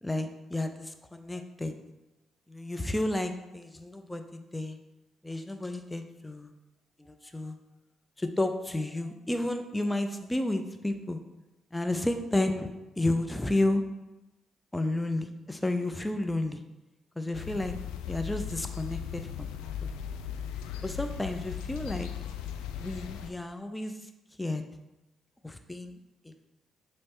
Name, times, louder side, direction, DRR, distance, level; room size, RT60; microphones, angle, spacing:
voice 1, 0.0-1.7 2.5-4.8 5.2-6.5 7.0-7.6 8.2-11.2 11.7-12.7 13.0-13.8 14.7-16.6 17.2-17.7 18.1-19.5 20.8-22.1 22.8-24.0 24.4-24.6 25.4-26.0 26.2-26.4, left 1 dB, 15° left, 7 dB, 0.6 m, -31 dB
sound 1, 17.3-23.3, left 9 dB, 75° left, 0.4 m, -37 dB
7.3 x 3.2 x 4.6 m, 0.99 s
hypercardioid pair, 45°, 0 cm